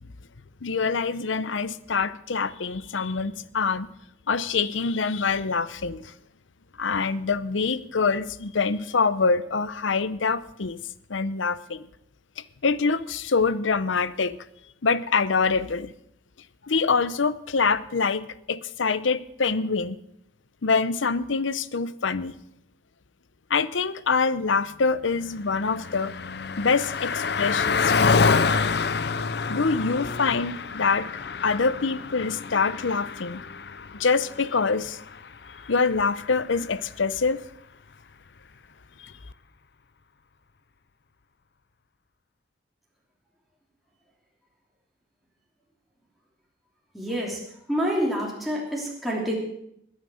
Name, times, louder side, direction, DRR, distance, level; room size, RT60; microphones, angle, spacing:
voice 1, 0.6-3.9 4.3-6.0 6.8-10.8 11.1-11.8 12.6-14.4 14.8-15.9 16.7-20.0 20.6-22.3 23.5-26.1 26.6-28.4 29.5-31.1 31.4-33.4 33.9-35.0 35.7-37.4 39.0-39.1, left 4 dB, 90° left, 16 dB, 0.7 m, -25 dB
Car passing by, 25.0-36.8, left 5 dB, 60° left, 0.6 m, -28 dB
voice 2, 46.9-47.4 47.7-49.4, equal, ahead, -4 dB, 3.2 m, -27 dB
21.0 x 9.2 x 6.4 m, 0.78 s
head